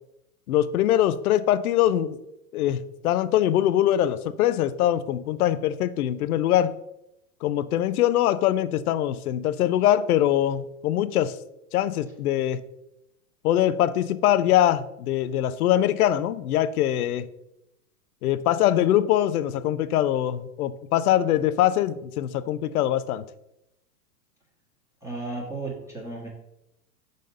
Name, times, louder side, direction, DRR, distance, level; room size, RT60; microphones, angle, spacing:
voice 1, 0.5-2.2 2.5-6.7 7.4-11.4 11.7-12.6 13.4-17.3 18.2-23.2, left 12 dB, 70° left, 14 dB, 0.6 m, -23 dB
voice 2, 25.0-26.3, right 3 dB, 5° right, -4 dB, 1.4 m, -34 dB
5.1 x 4.0 x 5.3 m, 0.86 s
hypercardioid pair, 115°, 46 cm